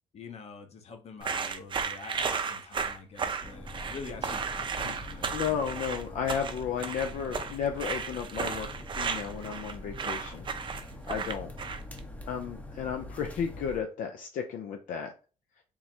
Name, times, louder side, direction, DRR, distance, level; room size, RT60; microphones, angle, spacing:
voice 1, 0.1-5.8, left 4 dB, 45° left, 5 dB, 0.8 m, -46 dB
sound 1, 1.2-12.0, right 5 dB, 35° right, 0.5 m, -34 dB
sound 2, 3.4-13.8, left 1 dB, 10° left, 0.7 m, -44 dB
voice 2, 5.3-8.7 9.0-10.5 11.1-11.5 12.3-15.1, left 7 dB, 70° left, 4 dB, 0.5 m, -33 dB
3.7 x 2.1 x 4.3 m, 0.36 s
cardioid pair, 95°, 14 cm